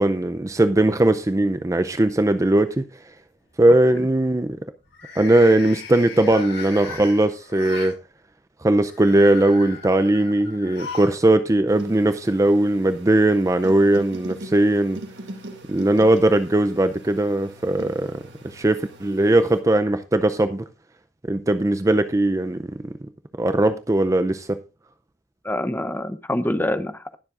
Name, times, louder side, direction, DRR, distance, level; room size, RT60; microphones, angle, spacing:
voice 1, 0.0-2.9 3.6-4.6 5.2-7.9 8.6-15.0 15.7-20.6 21.3-22.9 23.4-24.6, right 1 dB, 15° right, 0.4 m, -19 dB
sound 1, 1.4-2.0 2.4-2.8 4.8-8.0 8.8-11.2 11.5-11.6 12.7-12.8, left 5 dB, 75° left, 5.2 m, -38 dB
sound 2, 11.7-19.6, right 1 dB, 75° right, 2.4 m, -41 dB
voice 2, 25.4-27.2, left 1 dB, 10° left, 0.8 m, -26 dB
20.5 x 7.3 x 2.5 m
head